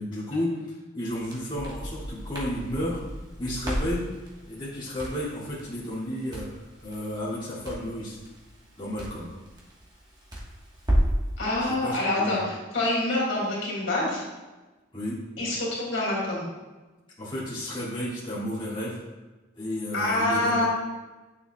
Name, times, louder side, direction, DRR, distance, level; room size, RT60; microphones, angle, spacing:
voice 1, 0.0-3.0 3.4-4.0 4.5-8.2 8.8-9.3 11.6-12.4 14.9-15.2 17.2-19.0 19.5-20.5, left 1 dB, 25° left, -10 dB, 2.4 m, -32 dB
Crackle, 1.1-11.3, equal, 20° right, 1.3 m, -33 dB
voice 2, 11.4-14.2 15.4-16.5 19.9-20.7, left 1 dB, 70° left, -5 dB, 2.4 m, -26 dB
9.3 x 6.7 x 2.3 m, 1.2 s
head